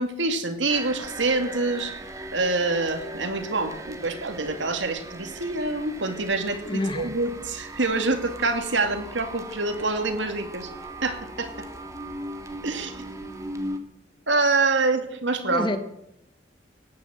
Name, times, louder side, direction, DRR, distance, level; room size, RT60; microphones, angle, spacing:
voice 1, 0.0-2.0 2.3-10.7 11.0-11.7 12.6-13.0 14.3-15.7, right 3 dB, 80° right, 7 dB, 2.4 m, -26 dB
sound 1, 0.7-13.8, right 1 dB, 15° right, 1.7 m, -39 dB
voice 2, 6.6-7.1 15.5-15.8, left 1 dB, 25° left, 9 dB, 1.3 m, -27 dB
18.0 x 9.6 x 8.0 m, 0.80 s
head